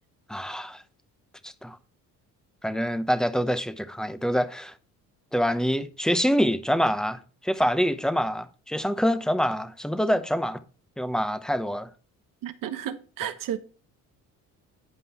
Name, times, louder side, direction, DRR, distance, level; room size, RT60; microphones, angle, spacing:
voice 1, 0.3-0.8 1.4-1.8 2.6-4.7 5.3-10.6 11.0-11.9, equal, ahead, 0.9 m, -26 dB
voice 2, 12.4-13.6, right 10 dB, 65° right, 1.2 m, -32 dB
10.0 x 5.3 x 4.3 m
supercardioid pair, 80°, 36 cm